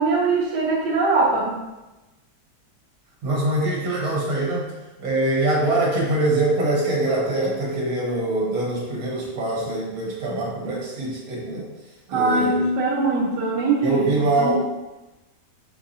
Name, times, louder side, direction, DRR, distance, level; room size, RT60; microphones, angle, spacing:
voice 1, 0.0-1.6 12.1-14.0 14.4-14.5, right 3 dB, 80° right, -5 dB, 1.3 m, -21 dB
voice 2, 3.2-4.7 5.0-11.7 12.1-12.6 13.8-14.5, right 2 dB, 60° right, -3 dB, 1.4 m, -23 dB
5.4 x 2.7 x 2.6 m, 1.1 s
omnidirectional pair, 1.8 m